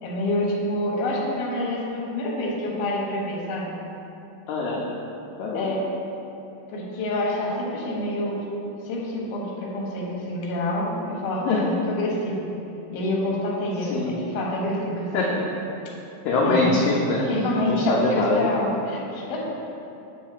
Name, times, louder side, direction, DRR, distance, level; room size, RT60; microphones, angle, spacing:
voice 1, 0.0-3.7 5.5-5.8 6.7-8.4 8.8-12.5 12.9-15.3 16.4-16.8 17.2-19.5, left 1 dB, 60° left, -4 dB, 1.7 m, -27 dB
voice 2, 4.5-4.8 5.4-5.8 11.5-11.6 13.9-14.1 15.1-15.4 16.3-17.3 17.7-18.5, left 3 dB, 80° left, -3 dB, 2.0 m, -23 dB
9.3 x 3.1 x 6.6 m, 2.9 s
omnidirectional pair, 4.5 m